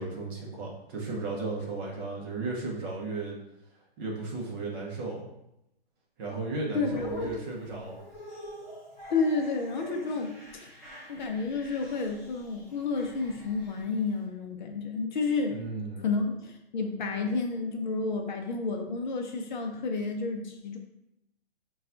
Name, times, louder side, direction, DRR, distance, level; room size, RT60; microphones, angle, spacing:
voice 1, 0.0-3.4 4.0-5.3 6.2-8.0 15.5-16.1, right 3 dB, 25° right, -3 dB, 0.6 m, -35 dB
voice 2, 6.7-7.3 9.1-10.3 10.6-10.7 11.1-15.5 16.0-20.8, left 4 dB, 50° left, 3 dB, 0.5 m, -30 dB
sound 1, 6.8-14.2, left 1 dB, 5° right, 1.4 m, -45 dB
5.3 x 2.3 x 2.5 m, 0.85 s
hypercardioid pair, 145°, 31 cm